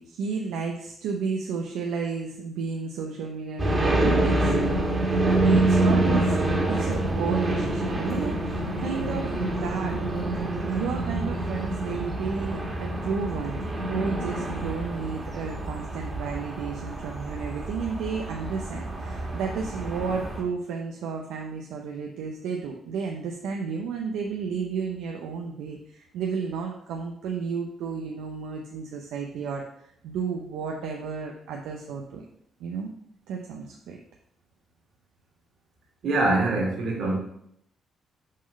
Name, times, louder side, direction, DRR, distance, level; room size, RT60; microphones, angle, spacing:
voice 1, 0.0-4.8 5.1-6.4 6.6-10.0 10.7-13.6 13.9-32.2 32.6-32.9 33.3-34.0, right 5 dB, 90° right, 2 dB, 0.7 m, -32 dB
sound 1, 3.6-20.4, right 2 dB, 30° right, 1.8 m, -26 dB
voice 2, 36.0-37.2, right 2 dB, 70° right, -1 dB, 2.4 m, -24 dB
6.4 x 3.9 x 5.4 m, 0.71 s
cardioid pair, 90°, 0 cm